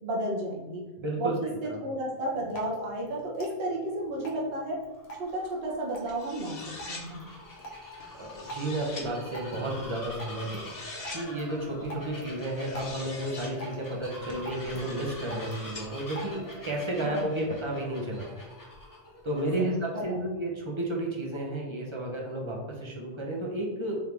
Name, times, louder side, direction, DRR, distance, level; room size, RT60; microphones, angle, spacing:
voice 1, 0.0-0.8 1.2-4.8 5.2-7.3 17.0-17.5 19.6-20.3, right 1 dB, 70° right, -3 dB, 1.1 m, -33 dB
voice 2, 1.0-1.3 1.7-1.8 8.2-10.6 11.1-18.3 19.2-24.0, right 1 dB, 30° right, -1 dB, 0.7 m, -32 dB
Drip, 2.2-16.7, right 2 dB, 85° left, 1.0 m, -47 dB
Bird vocalization bird call bird song, 4.8-19.9, left 1 dB, 20° left, 0.8 m, -45 dB
sound 1, 6.1-7.0 8.0-9.1 10.3-11.2 12.4-13.5 14.3-15.9, left 3 dB, 50° left, 0.8 m, -44 dB
3.7 x 3.2 x 3.3 m, 1.2 s
omnidirectional pair, 1.0 m